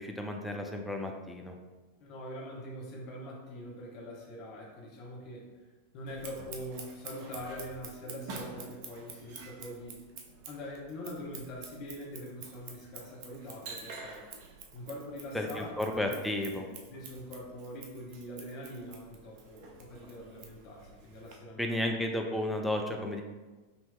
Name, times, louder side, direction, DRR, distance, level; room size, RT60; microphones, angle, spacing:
voice 1, 0.0-1.6 15.3-16.7 21.6-23.2, left 1 dB, 5° left, 2 dB, 0.4 m, -33 dB
voice 2, 2.0-5.5 5.9-10.1 10.5-14.2 14.7-15.7 16.0-16.1 16.5-21.9, equal, 40° left, -3 dB, 1.0 m, -43 dB
Scissors, 6.1-21.3, right 4 dB, 45° right, 0.5 m, -48 dB
5.3 x 2.8 x 2.2 m, 1.2 s
figure-of-eight pair, 90°, 0 cm